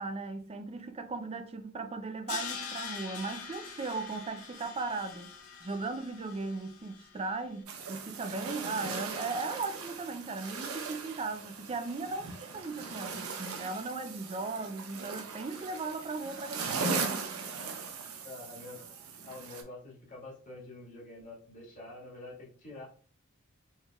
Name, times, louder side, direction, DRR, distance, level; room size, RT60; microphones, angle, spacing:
voice 1, 0.0-17.4, right 3 dB, 30° right, 0.5 m, -37 dB
Crash cymbal, 2.3-7.3, left 6 dB, 85° left, 0.8 m, -43 dB
sound 1, 7.7-19.6, right 4 dB, 85° right, 0.7 m, -39 dB
voice 2, 18.2-18.9 19.3-22.9, left 2 dB, 40° left, 1.8 m, -47 dB
4.4 x 3.3 x 2.3 m
head